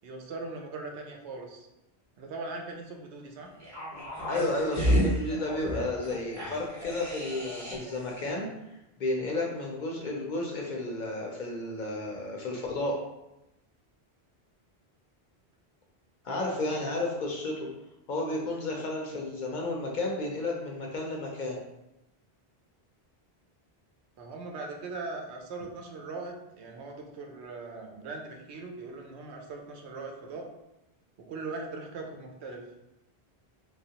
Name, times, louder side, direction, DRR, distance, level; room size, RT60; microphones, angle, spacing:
voice 1, 0.0-1.7 2.2-3.5 16.2-16.9 24.2-30.5 31.2-32.6, right 3 dB, 85° right, 2 dB, 0.9 m, -40 dB
sound 1, 3.6-8.0 8.3-8.4, equal, 20° right, 0.7 m, -31 dB
voice 2, 4.3-8.5 9.0-13.0 16.2-17.7 18.1-21.6, left 2 dB, 60° left, -1 dB, 0.6 m, -32 dB
3.1 x 2.3 x 2.8 m, 0.92 s
omnidirectional pair, 1.1 m